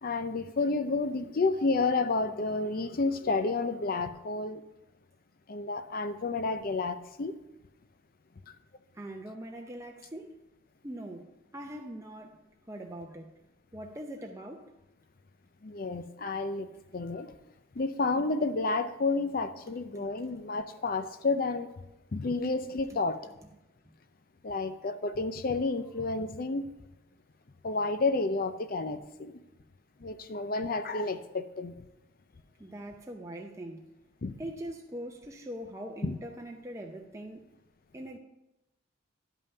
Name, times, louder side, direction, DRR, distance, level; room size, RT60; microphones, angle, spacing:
voice 1, 0.0-4.6 5.5-7.4 15.6-17.3 17.7-21.7 22.1-23.2 24.4-26.6 27.6-29.4 30.0-31.7 34.2-34.3 36.0-36.2, left 3 dB, 50° left, 0.5 m, -30 dB
voice 2, 9.0-10.4 10.8-12.4 12.7-13.3 13.7-14.7 20.0-20.1 32.6-33.8 34.4-37.4 37.9-38.2, right 1 dB, 15° right, 0.6 m, -42 dB
11.0 x 5.5 x 5.5 m
head